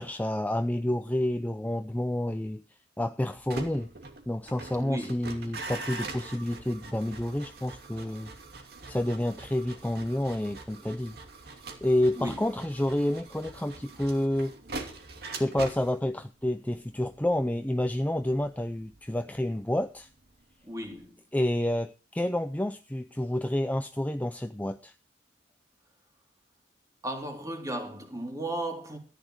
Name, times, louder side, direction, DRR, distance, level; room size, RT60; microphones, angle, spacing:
voice 1, 0.0-2.6 3.0-3.9 4.3-8.3 8.9-11.2 11.8-14.5 15.3-20.1 21.3-24.9, left 1 dB, 10° left, 0.6 m, -29 dB
sound 1, 3.3-20.3 20.6-21.1, right 3 dB, 60° right, 2.7 m, -43 dB
voice 2, 4.8-5.1 12.1-12.4 20.6-21.2 27.0-29.0, right 1 dB, 20° right, 3.4 m, -35 dB
14.5 x 10.5 x 4.9 m
head